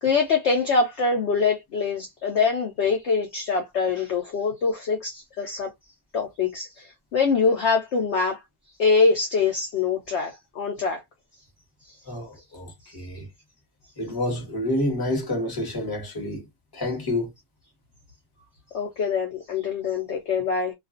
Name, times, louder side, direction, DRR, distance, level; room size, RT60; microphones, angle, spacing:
voice 1, 0.0-5.7 6.1-6.9 7.1-8.4 8.8-11.0 18.7-20.7, left 4 dB, 65° left, 0.6 m, -24 dB
voice 2, 12.1-13.3 14.0-16.4 16.7-17.3, left 1 dB, 20° left, 0.8 m, -28 dB
2.4 x 2.3 x 2.4 m
omnidirectional pair, 1.7 m